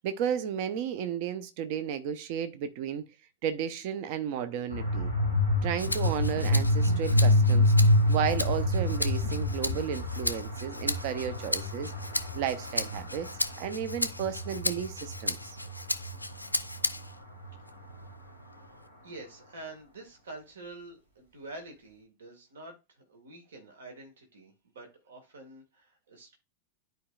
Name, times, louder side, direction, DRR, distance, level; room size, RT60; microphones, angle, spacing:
voice 1, 0.0-3.1 3.4-5.1 5.6-7.7 8.1-11.9 12.3-13.3 13.6-15.4, right 9 dB, 45° right, 0.8 m, -33 dB
sound 1, 4.7-18.6, left 1 dB, 80° right, 2.7 m, -28 dB
Rattle (instrument), 5.8-17.2 17.7-18.9, left 2 dB, 85° left, 0.4 m, -36 dB
voice 2, 19.0-26.3, right 2 dB, 65° right, 1.8 m, -47 dB
11.5 x 4.6 x 2.4 m
figure-of-eight pair, 90°, 0 cm